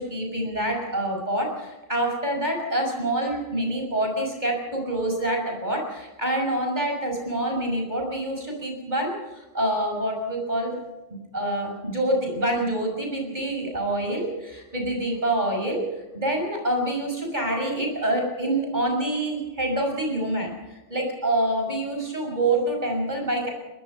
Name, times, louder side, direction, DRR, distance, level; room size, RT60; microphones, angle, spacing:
voice 1, 0.0-10.8 11.3-15.9 16.1-23.5, right 1 dB, 35° right, 2 dB, 6.5 m, -26 dB
23.0 x 22.0 x 5.5 m, 1.0 s
omnidirectional pair, 1.3 m